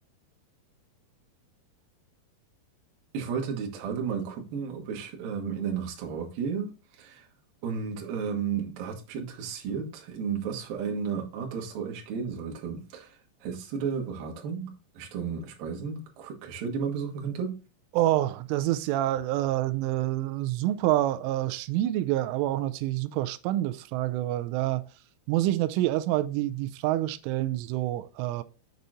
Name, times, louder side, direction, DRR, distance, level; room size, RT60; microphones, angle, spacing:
voice 1, 3.1-7.3 7.6-17.5, right 6 dB, 60° right, 2.7 m, -33 dB
voice 2, 17.9-24.8 25.3-28.4, right 14 dB, 90° right, 3.1 m, -27 dB
7.6 x 6.8 x 2.6 m
omnidirectional pair, 5.5 m